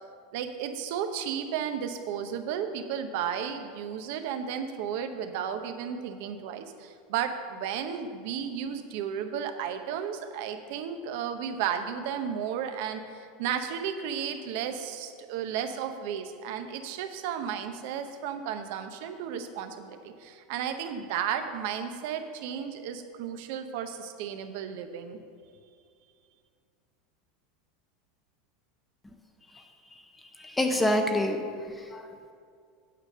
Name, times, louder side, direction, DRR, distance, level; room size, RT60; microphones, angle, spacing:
voice 1, 0.3-25.2, right 8 dB, 65° right, 8 dB, 0.7 m, -33 dB
voice 2, 30.4-31.4 31.7-32.1, left 1 dB, 10° left, 5 dB, 0.6 m, -27 dB
8.8 x 5.0 x 6.5 m, 2.3 s
supercardioid pair, 130°, 0 cm